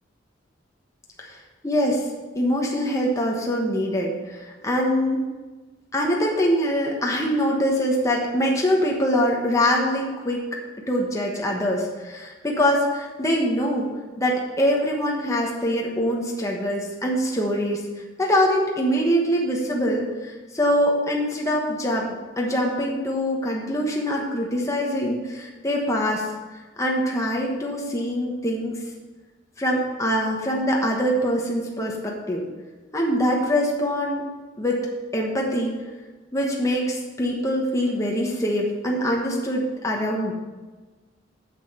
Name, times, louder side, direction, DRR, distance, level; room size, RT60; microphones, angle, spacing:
voice 1, 1.6-2.0 2.3-5.3 5.9-10.4 10.9-13.9 14.2-17.8 18.2-22.1 22.4-26.3 26.8-28.8 29.6-32.4 32.9-34.2 34.6-34.8 35.1-35.7 36.3-40.3, equal, 15° left, -2 dB, 1.2 m, -23 dB
8.1 x 7.0 x 5.6 m, 1.3 s
head